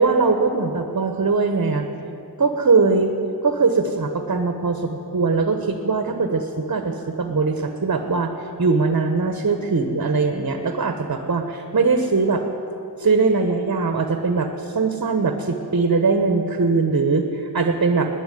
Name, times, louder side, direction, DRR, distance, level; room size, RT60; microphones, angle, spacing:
voice 1, 0.0-1.8 2.4-3.1 3.4-8.3 8.6-12.4 13.0-18.1, right 4 dB, 45° right, 6 dB, 1.1 m, -21 dB
11.0 x 10.0 x 9.3 m, 2.8 s
cardioid pair, 45°, 42 cm